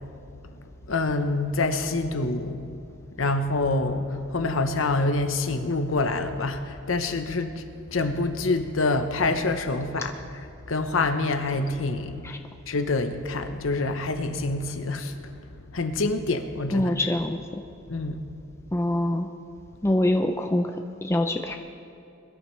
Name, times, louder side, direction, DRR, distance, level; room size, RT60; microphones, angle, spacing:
voice 1, 0.9-2.7 3.2-7.6 7.9-12.2 12.7-15.1 15.7-17.1 17.9-18.2, left 2 dB, 75° left, 1.0 m, -26 dB
voice 2, 16.7-17.4 18.7-19.3 19.8-21.6, left 1 dB, 15° left, 0.5 m, -24 dB
22.0 x 12.5 x 3.2 m
head